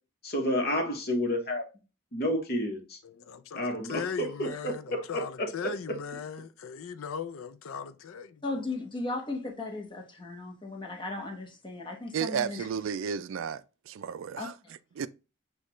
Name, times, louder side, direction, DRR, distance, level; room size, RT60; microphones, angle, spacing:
voice 1, 0.2-1.6 2.1-3.0 3.5-5.7, left 1 dB, 50° left, 1.0 m, -30 dB
voice 2, 3.0-8.4, left 7 dB, 85° left, 0.4 m, -39 dB
voice 3, 8.4-12.7 14.3-14.7, left 2 dB, 25° left, 0.9 m, -36 dB
voice 4, 12.1-14.5 15.0-15.1, right 7 dB, 75° right, 0.3 m, -33 dB
6.5 x 2.3 x 3.0 m
head